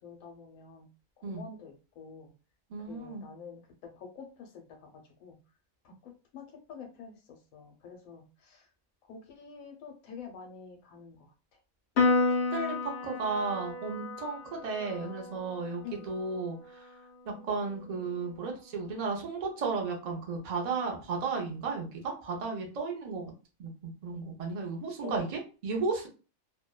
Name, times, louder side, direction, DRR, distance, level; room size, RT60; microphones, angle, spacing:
voice 1, 0.0-0.9 1.2-2.3 2.9-3.6 3.9-4.9 5.2-5.4 5.8-8.7 9.0-11.3 15.8-16.1 25.0-25.3, left 5 dB, 75° left, 3 dB, 1.0 m, -47 dB
voice 2, 2.7-3.2 12.5-16.9 17.3-23.3 23.6-23.7 24.0-26.1, right 4 dB, 75° right, 0 dB, 0.3 m, -34 dB
Piano, 12.0-18.6, left 3 dB, 60° left, 0.8 m, -33 dB
2.6 x 2.1 x 2.2 m, 0.34 s
omnidirectional pair, 1.5 m